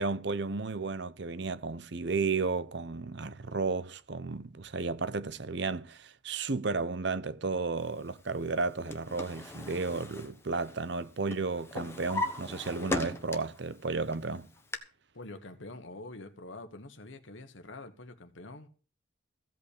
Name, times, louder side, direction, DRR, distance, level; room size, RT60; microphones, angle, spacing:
voice 1, 0.0-14.5, right 4 dB, 60° right, 0.7 m, -33 dB
Drawer open or close, 8.6-11.0 11.3-13.6 14.1-14.8, left 2 dB, 10° left, 1.2 m, -38 dB
voice 2, 15.1-18.7, left 2 dB, 70° left, 1.3 m, -46 dB
15.5 x 5.5 x 8.5 m
head